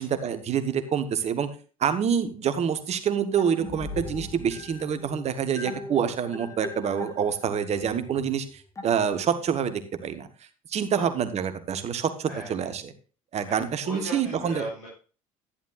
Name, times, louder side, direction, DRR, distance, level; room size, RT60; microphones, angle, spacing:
voice 1, 0.0-1.5 1.8-10.3 10.7-12.9 13.3-14.7, right 8 dB, 40° right, 10 dB, 1.3 m, -27 dB
sound 1, 3.4-9.5, left 3 dB, 20° left, 1.4 m, -40 dB
voice 2, 12.3-12.7 13.5-13.6 13.8-14.9, equal, 85° left, -8 dB, 4.0 m, -37 dB
11.5 x 11.0 x 2.5 m, 0.36 s
figure-of-eight pair, 60°, 17 cm